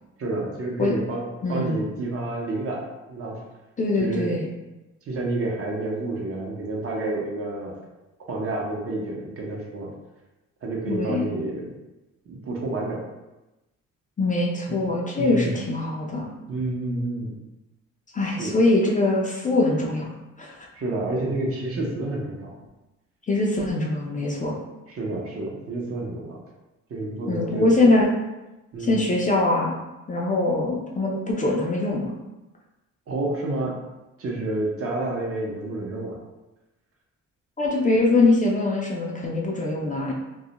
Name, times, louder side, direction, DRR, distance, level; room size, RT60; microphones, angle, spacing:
voice 1, 0.2-1.2 1.5-3.4 4.0-4.4 5.1-7.8 8.3-9.9 10.6-11.7 12.3-13.0 14.7-14.8 15.1-15.6 16.5-17.4 18.4-18.6 20.7-22.6 24.9-26.4 26.9-27.9 28.7-29.1 33.1-33.7 34.2-36.2, right 2 dB, 50° right, -2 dB, 0.7 m, -29 dB
voice 2, 1.4-1.8 3.8-4.5 10.9-11.3 14.2-16.3 18.1-20.1 20.4-20.6 23.3-24.6 27.3-28.1 28.8-29.7 30.1-32.1 37.6-40.1, left 2 dB, 25° left, -2 dB, 0.4 m, -22 dB
2.3 x 2.1 x 2.8 m, 1.0 s
cardioid pair, 90°, 30 cm